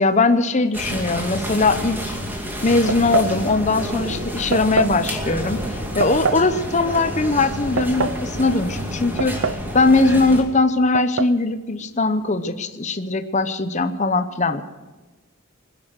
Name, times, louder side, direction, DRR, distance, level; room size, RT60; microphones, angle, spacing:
voice 1, 0.0-2.2 2.6-5.7 5.9-9.4 9.7-14.6, left 3 dB, 35° left, 9 dB, 0.9 m, -20 dB
sound 1, 0.7-10.4, equal, 10° right, 2.4 m, -29 dB
sound 2, 2.9-3.4 4.5-5.0 6.0-6.5 7.5-8.2 9.2-9.7 10.0-10.1 10.9-11.4, right 5 dB, 75° right, 0.6 m, -25 dB
20.5 x 10.5 x 6.5 m, 1.2 s
head